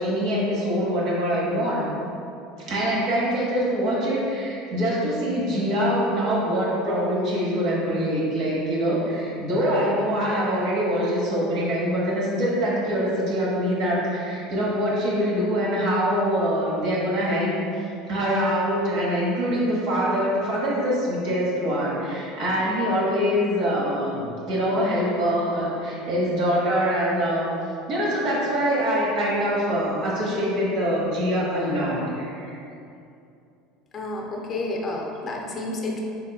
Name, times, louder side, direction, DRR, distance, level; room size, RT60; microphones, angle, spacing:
voice 1, 0.0-1.9 2.6-17.5 18.1-27.5 27.9-32.6, equal, 60° right, -5 dB, 1.0 m, -24 dB
voice 2, 33.9-36.0, left 2 dB, 35° left, 0 dB, 0.5 m, -30 dB
4.0 x 3.0 x 2.3 m, 2.6 s
supercardioid pair, 110°, 0 cm